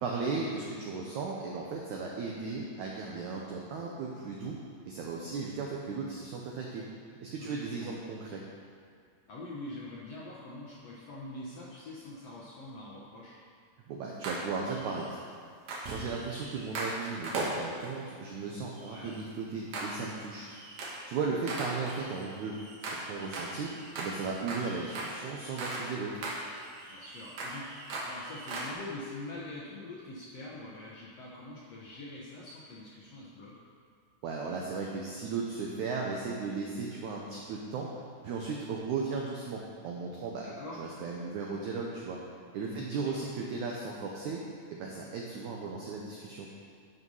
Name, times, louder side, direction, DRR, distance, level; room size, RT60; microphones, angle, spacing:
voice 1, 0.0-4.6 4.8-6.8 7.2-8.4 13.9-15.2 15.9-20.5 21.1-22.5 22.8-23.7 23.9-26.2 34.2-37.9 38.2-40.5 40.8-42.2 42.5-44.4 44.7-46.5, right 4 dB, 85° right, -2 dB, 1.7 m, -36 dB
voice 2, 7.4-7.9 9.3-13.3 18.8-19.1 21.3-21.6 26.9-33.5 40.4-40.8 42.7-43.3, left 2 dB, 75° left, -6 dB, 1.5 m, -44 dB
sound 1, 14.2-15.1 15.7-18.0 18.7-19.2 19.7-20.2 20.5-21.1 21.5-26.0 26.2-28.7, right 2 dB, 60° right, 2.0 m, -39 dB
11.0 x 5.5 x 5.4 m, 2.3 s
omnidirectional pair, 4.5 m